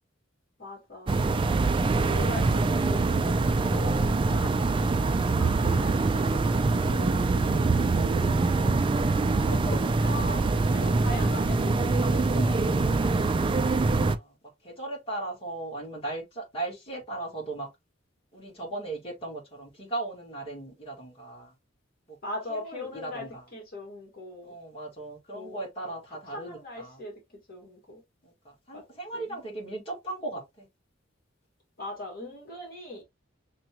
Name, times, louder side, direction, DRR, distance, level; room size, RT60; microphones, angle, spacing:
voice 1, 0.6-1.4 2.0-3.4 3.6-9.1 9.4-13.2 22.2-24.5 25.3-25.7 26.3-27.2 27.5-28.0 28.7-28.8 29.1-29.4 31.8-33.0, left 2 dB, 50° left, 1.7 m, -40 dB
sound 1, 1.1-14.2, right 3 dB, 25° right, 0.3 m, -24 dB
voice 2, 13.9-14.4 14.6-17.7 18.3-21.5 22.1-22.2 22.5-23.4 24.4-27.0 28.2-30.7, right 2 dB, 30° left, 1.8 m, -37 dB
5.9 x 2.2 x 2.8 m
head